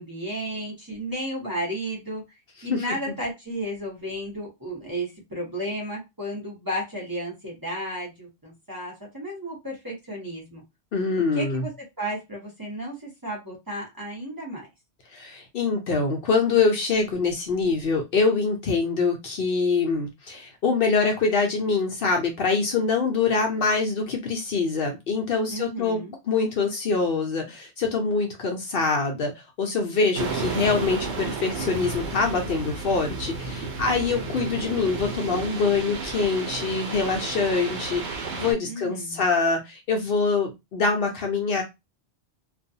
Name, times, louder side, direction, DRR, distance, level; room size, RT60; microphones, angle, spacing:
voice 1, 0.0-2.2 2.6-10.6 11.3-11.7 12.0-14.7 25.5-26.2 38.6-39.2, equal, 20° right, -4 dB, 0.9 m, -33 dB
voice 2, 10.9-11.6 15.1-29.3 29.6-41.6, left 4 dB, 65° left, 3 dB, 0.8 m, -24 dB
sound 1, 30.1-38.5, right 4 dB, 85° right, 1.0 m, -32 dB
2.5 x 2.3 x 2.6 m, 0.22 s
omnidirectional pair, 1.1 m